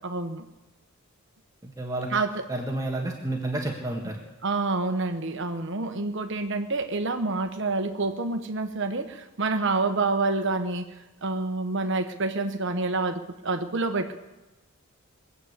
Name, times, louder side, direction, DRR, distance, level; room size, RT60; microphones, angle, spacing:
voice 1, 0.0-0.5 2.1-2.5 4.4-10.9 11.2-14.2, right 3 dB, 55° right, 7 dB, 1.2 m, -28 dB
voice 2, 1.6-2.1 2.5-4.2, right 2 dB, 15° right, 0 dB, 1.5 m, -30 dB
21.5 x 8.3 x 8.1 m, 1.1 s
head